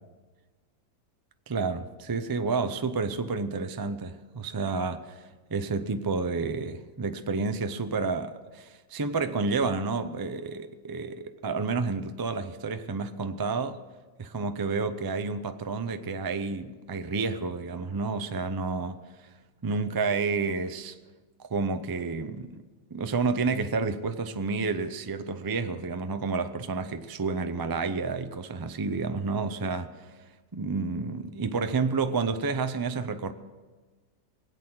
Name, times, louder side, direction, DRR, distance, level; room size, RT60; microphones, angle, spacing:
voice 1, 1.5-5.2 5.5-13.8 14.2-19.0 19.6-20.9 21.4-22.6 22.9-29.9 30.5-33.3, right 4 dB, 30° right, 0.4 m, -30 dB
22.5 x 8.3 x 6.1 m
omnidirectional pair, 1.4 m